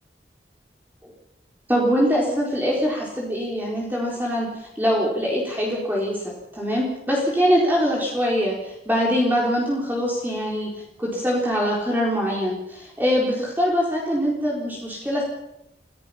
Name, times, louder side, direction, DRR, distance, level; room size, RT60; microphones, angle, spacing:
voice 1, 1.7-15.2, equal, 10° right, -3 dB, 4.2 m, -23 dB
28.0 x 16.5 x 5.8 m, 0.83 s
head